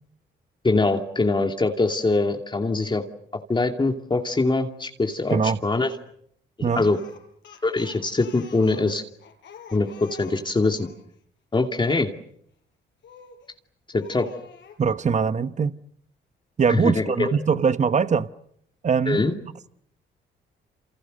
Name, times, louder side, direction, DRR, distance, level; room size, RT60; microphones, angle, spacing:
voice 1, 0.6-3.0 3.5-5.9 6.7-7.0 7.6-9.0 9.7-10.9 11.5-12.1 13.9-14.3 16.7-17.4 19.1-19.3, left 3 dB, 25° left, 2.6 m, -23 dB
Speech, 6.7-11.0 13.0-13.5 13.9-14.8, left 7 dB, 70° left, 5.9 m, -46 dB
voice 2, 14.8-15.7 16.6-18.3 18.8-19.2, right 6 dB, 35° right, 1.2 m, -22 dB
29.0 x 28.5 x 6.7 m
cardioid pair, 90°, 20 cm